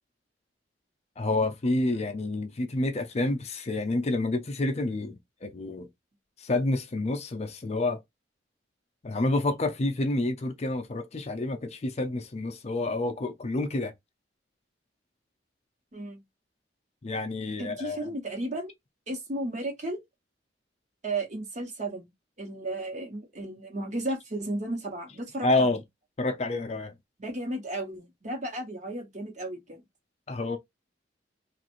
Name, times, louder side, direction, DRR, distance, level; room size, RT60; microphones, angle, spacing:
voice 1, 1.2-5.9 6.4-8.0 9.0-13.9 17.0-18.1 25.4-25.8 26.2-26.9 30.3-30.6, left 2 dB, 35° left, 0.5 m, -28 dB
voice 2, 17.6-18.7 19.1-20.0 21.0-22.1 22.4-25.8 27.2-29.8, right 1 dB, 40° right, 1.1 m, -34 dB
3.2 x 2.4 x 3.0 m
head